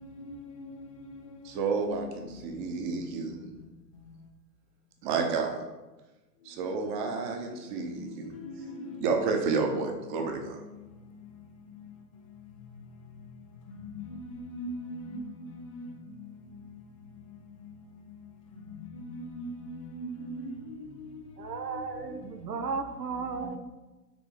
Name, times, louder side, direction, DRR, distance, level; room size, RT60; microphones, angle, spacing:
voice 1, 1.4-3.4 5.0-5.6 6.4-8.3 9.0-10.6, right 4 dB, 30° right, 1.0 m, -30 dB
voice 2, 8.3-9.0 13.8-15.5 15.7-15.9 18.9-20.9 21.8-21.9, equal, 20° left, 0.4 m, -40 dB
voice 3, 21.4-23.6, right 5 dB, 75° right, 0.8 m, -35 dB
6.2 x 3.9 x 5.1 m
figure-of-eight pair, 110°, 50 cm